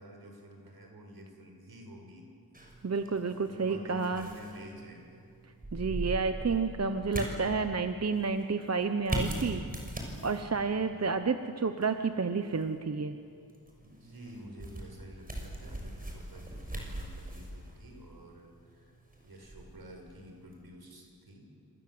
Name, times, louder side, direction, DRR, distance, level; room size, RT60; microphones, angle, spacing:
voice 1, 0.0-2.3 3.3-5.2 10.7-11.1 13.8-18.9 19.2-21.5, equal, 75° right, 2 dB, 6.3 m, -49 dB
sound 1, 2.5-20.6, right 1 dB, 25° right, 6.5 m, -41 dB
voice 2, 2.8-4.3 5.7-9.6 10.2-13.2, right 4 dB, 45° right, 8 dB, 1.1 m, -30 dB
28.0 x 27.0 x 7.9 m, 2.4 s
wide cardioid pair, 90°, 37 cm